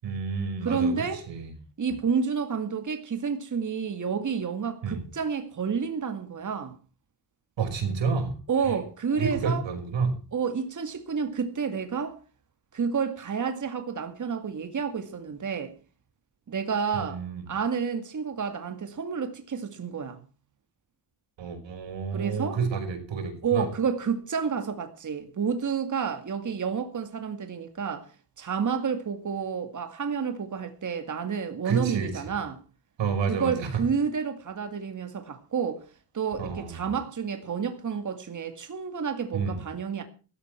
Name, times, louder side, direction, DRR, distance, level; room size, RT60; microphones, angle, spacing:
voice 1, 0.0-1.5 4.8-5.0 7.6-8.7 9.2-10.2 16.9-17.4 21.4-23.7 31.6-32.4 33.0-33.8 36.4-36.8 39.3-39.6, right 5 dB, 80° right, 5.5 m, -30 dB
voice 2, 0.6-1.2 1.8-6.7 8.5-9.6 10.3-12.2 12.7-15.7 16.5-17.2 17.5-20.2 22.1-22.6 23.4-32.6 33.3-35.8 36.1-40.0, right 6 dB, 40° right, 2.3 m, -30 dB
16.0 x 13.0 x 4.6 m
cardioid pair, 120°, 44 cm